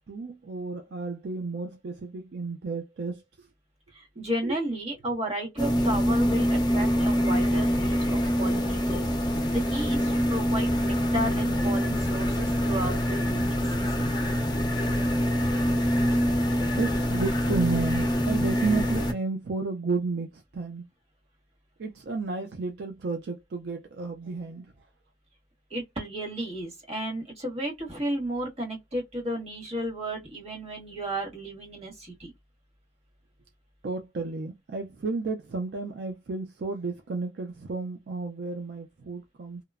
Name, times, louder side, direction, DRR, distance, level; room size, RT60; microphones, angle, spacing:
voice 1, 0.1-3.5 4.4-4.6 11.2-11.5 16.8-20.9 21.8-24.7 33.8-39.6, right 3 dB, 65° right, 0.4 m, -32 dB
voice 2, 3.9-14.1 25.7-32.3, right 1 dB, 35° right, 1.6 m, -33 dB
sound 1, 5.6-19.1, equal, 25° left, 0.7 m, -25 dB
2.9 x 2.0 x 2.3 m
head